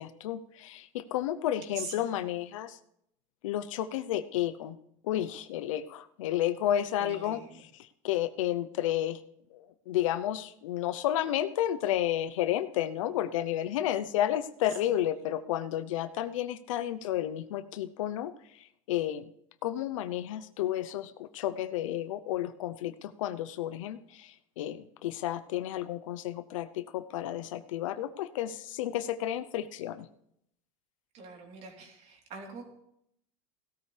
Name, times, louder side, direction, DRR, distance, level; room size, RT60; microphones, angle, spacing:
voice 1, 0.0-2.8 3.4-4.8 5.0-7.4 7.7-9.2 9.5-19.3 19.6-30.1, left 12 dB, 80° left, 13 dB, 0.8 m, -32 dB
voice 2, 1.7-2.4 7.0-7.6 14.7-14.8 15.2-15.3 31.1-32.7, right 4 dB, 45° right, 1 dB, 3.6 m, -44 dB
16.5 x 12.5 x 3.4 m, 0.74 s
supercardioid pair, 125°, 16 cm